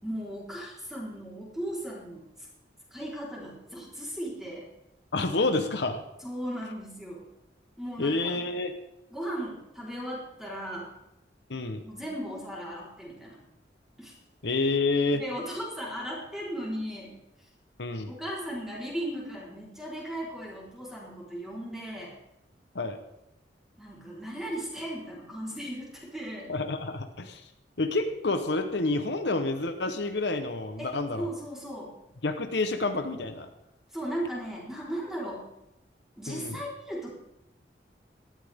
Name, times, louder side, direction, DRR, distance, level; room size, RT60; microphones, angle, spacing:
voice 1, 0.0-2.5 2.9-4.7 6.2-7.2 7.8-8.4 9.1-11.0 11.8-13.4 14.0-14.2 15.1-17.2 18.1-22.2 23.8-26.6 30.8-32.0 33.9-35.5 36.2-37.1, equal, ahead, -5 dB, 4.0 m, -37 dB
voice 2, 5.1-6.0 8.0-8.7 11.5-11.8 14.4-15.2 17.8-18.1 22.7-23.0 26.5-27.4 27.8-31.3 32.2-33.5 36.3-36.6, left 3 dB, 70° left, 7 dB, 1.0 m, -28 dB
18.0 x 12.5 x 3.6 m, 0.85 s
head